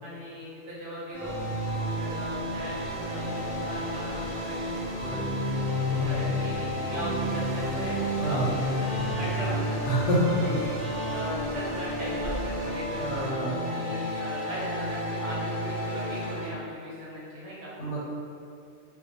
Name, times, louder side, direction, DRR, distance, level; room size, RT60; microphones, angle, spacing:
voice 1, 0.0-1.4 2.0-5.6 6.1-9.8 10.2-10.8 11.0-13.3 13.6-17.7, equal, 80° right, -7 dB, 1.1 m, -38 dB
sound 1, 1.1-16.5, equal, 60° right, 0.6 m, -31 dB
sound 2, 1.2-13.3, equal, 5° left, 1.1 m, -41 dB
voice 2, 5.8-6.2 8.2-8.6 9.9-10.4 13.0-13.8 17.8-18.0, right 1 dB, 75° left, -6 dB, 0.9 m, -28 dB
2.3 x 2.2 x 2.5 m, 2.4 s
omnidirectional pair, 1.2 m